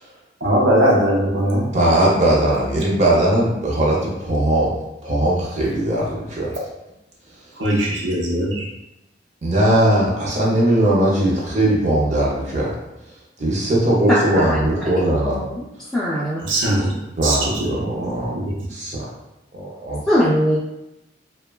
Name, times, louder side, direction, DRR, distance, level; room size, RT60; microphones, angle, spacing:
voice 1, 0.4-1.7 7.6-8.7 16.4-16.9 17.2-17.8 18.3-18.5, right 1 dB, 85° right, -2 dB, 0.6 m, -19 dB
voice 2, 1.7-4.7 5.0-6.6 9.4-12.7 13.4-15.4 17.2-18.3 18.7-19.1 19.5-20.0, right 1 dB, 40° right, -4 dB, 0.6 m, -19 dB
voice 3, 15.3-15.7 15.9-16.4 20.1-20.6, equal, 5° left, -10 dB, 0.3 m, -20 dB
2.9 x 2.2 x 2.2 m, 0.93 s
head